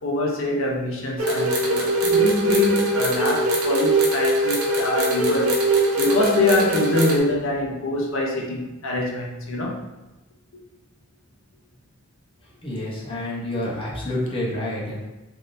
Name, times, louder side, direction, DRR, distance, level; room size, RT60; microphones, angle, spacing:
voice 1, 0.0-5.6 6.0-9.8, left 2 dB, 65° left, -1 dB, 0.6 m, -24 dB
sound 1, 1.2-7.2, right 1 dB, 75° right, 0.7 m, -21 dB
voice 2, 12.6-15.1, left 1 dB, 25° left, -6 dB, 0.8 m, -28 dB
3.3 x 2.6 x 2.6 m, 1.0 s
head